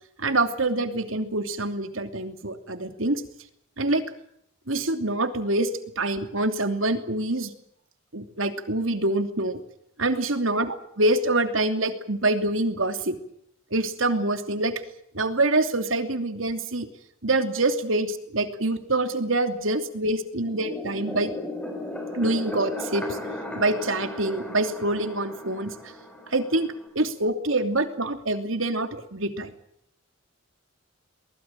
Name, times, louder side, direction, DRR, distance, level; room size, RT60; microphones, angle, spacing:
voice 1, 0.2-3.2 3.8-4.0 4.7-5.7 6.0-7.5 8.1-9.6 10.0-10.7 11.0-13.2 13.7-14.7 15.1-16.9 17.2-21.3 22.1-23.2 23.5-25.7 26.3-26.7 26.9-29.5, right 2 dB, 75° right, 8 dB, 2.9 m, -25 dB
sound 1, 20.3-26.9, left 1 dB, 5° left, 5.1 m, -36 dB
23.0 x 20.5 x 7.6 m, 0.72 s
head